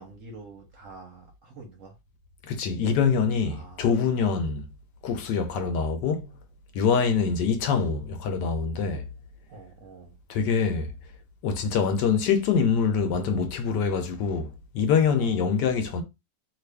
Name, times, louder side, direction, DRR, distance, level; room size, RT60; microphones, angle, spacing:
voice 1, 0.0-1.9 3.5-4.4 5.5-5.7 6.9-7.0 9.5-10.1 15.2-15.4, right 3 dB, 65° right, 0.8 m, -46 dB
voice 2, 2.5-4.7 5.0-6.3 6.7-9.1 10.3-10.9 11.4-16.0, left 6 dB, 75° left, 1.2 m, -25 dB
3.0 x 2.4 x 3.3 m
omnidirectional pair, 2.0 m